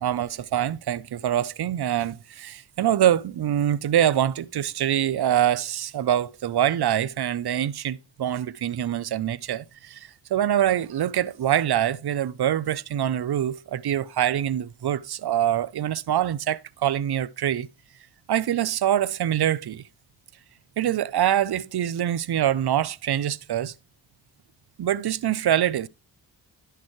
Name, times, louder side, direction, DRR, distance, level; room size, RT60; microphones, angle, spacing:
voice 1, 0.0-17.7 18.3-19.8 20.8-23.7 24.8-25.9, right 11 dB, 55° right, 0.6 m, -24 dB
10.5 x 6.7 x 3.1 m
cardioid pair, 45°, 48 cm